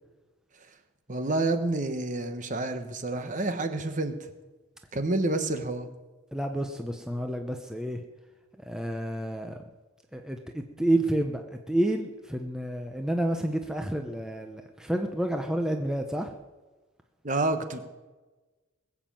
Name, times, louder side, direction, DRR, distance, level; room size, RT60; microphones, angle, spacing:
voice 1, 1.1-4.1 4.9-5.9 17.2-17.8, right 2 dB, 35° right, 8 dB, 1.1 m, -28 dB
voice 2, 6.3-8.0 8.6-9.6 10.1-16.3, right 1 dB, 5° right, 4 dB, 0.7 m, -29 dB
20.5 x 7.3 x 7.6 m, 1.2 s
head